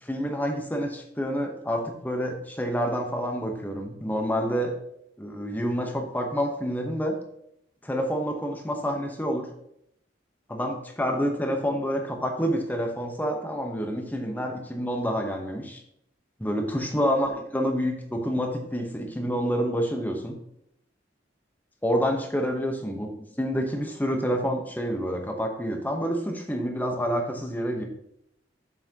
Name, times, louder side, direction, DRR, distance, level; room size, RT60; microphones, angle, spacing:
voice 1, 0.0-4.7 5.2-7.1 7.8-9.5 10.5-15.8 16.4-20.4 21.8-23.1 23.4-27.8, equal, 10° left, 3 dB, 0.9 m, -28 dB
7.2 x 5.8 x 2.9 m, 0.76 s
head